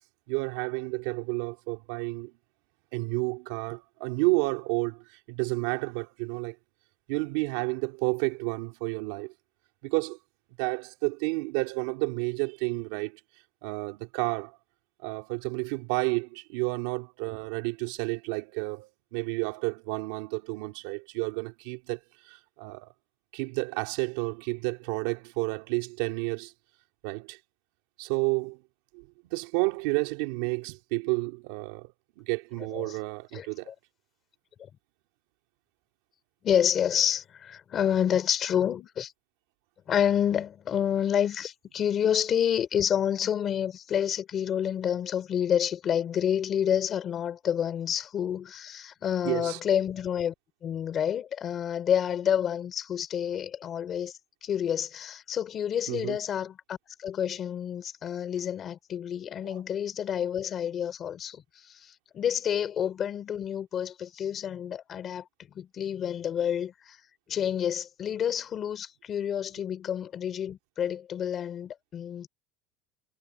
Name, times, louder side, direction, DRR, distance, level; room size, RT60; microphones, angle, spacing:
voice 1, 0.3-2.3 2.9-6.6 7.1-9.3 9.8-10.2 10.6-13.2 13.6-14.6 15.0-22.0 22.3-22.9 23.3-26.5 27.0-27.4 28.0-28.6 28.9-31.9 32.2-33.7 49.2-49.6 55.9-56.2 59.4-59.6, right 26 dB, 65° right, 2.7 m, -31 dB
voice 2, 33.3-33.7 34.6-34.7 36.4-39.1 39.9-50.3 50.6-65.3 65.5-67.0 67.3-72.3, left 9 dB, 25° left, 4.0 m, -29 dB
cardioid pair, 180°, 0 cm